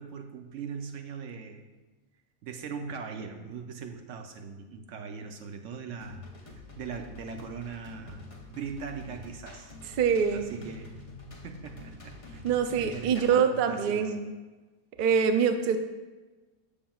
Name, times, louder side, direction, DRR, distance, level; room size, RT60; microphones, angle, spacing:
voice 1, 0.0-1.6 2.4-6.2 6.8-9.7 10.3-10.9 11.4-14.1, right 6 dB, 65° right, 5 dB, 1.0 m, -40 dB
sound 1, 6.0-13.4, left 3 dB, 30° left, 0.7 m, -47 dB
voice 2, 10.0-10.5 12.4-14.3 15.0-15.8, right 7 dB, 85° right, 7 dB, 0.4 m, -24 dB
7.4 x 6.7 x 2.3 m, 1.2 s
omnidirectional pair, 1.5 m